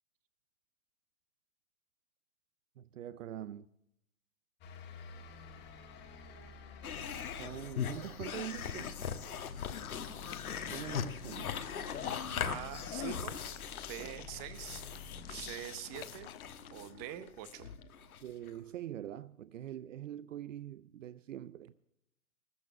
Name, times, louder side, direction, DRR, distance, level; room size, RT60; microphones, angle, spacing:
voice 1, 2.8-3.7 7.3-8.9 10.7-11.5 14.0-14.3 18.2-21.7, right 11 dB, 60° right, 0.6 m, -44 dB
sound 1, 4.6-15.6, left 6 dB, 25° left, 1.7 m, -52 dB
sound 2, 6.8-18.6, left 7 dB, 75° left, 1.4 m, -40 dB
sound 3, 9.2-16.7, left 12 dB, 45° left, 0.7 m, -51 dB
voice 2, 12.4-13.4 13.7-14.8 15.3-16.3 16.7-17.7, right 13 dB, 25° right, 0.8 m, -44 dB
19.5 x 6.8 x 7.3 m
hypercardioid pair, 130°, 44 cm